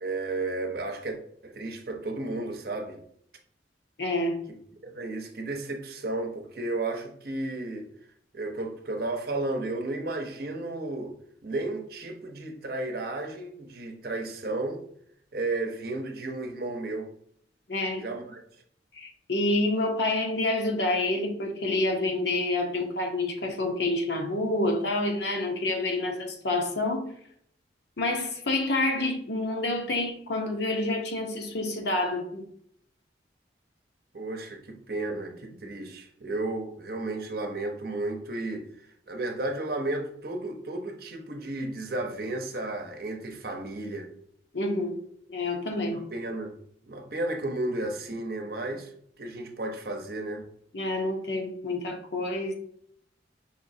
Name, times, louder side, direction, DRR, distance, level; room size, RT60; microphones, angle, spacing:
voice 1, 0.0-1.2 1.4-3.0 4.8-7.9 8.3-11.1 11.4-14.8 15.3-17.1 18.0-18.4 34.1-44.1 45.9-46.6 46.9-48.9 49.2-50.5, right 2 dB, 55° right, 0.7 m, -33 dB
voice 2, 4.0-4.4 17.7-18.0 18.9-27.1 28.0-32.4 44.5-44.9 45.3-46.0 50.7-52.5, left 2 dB, 70° left, 0.8 m, -28 dB
5.3 x 3.1 x 2.7 m
head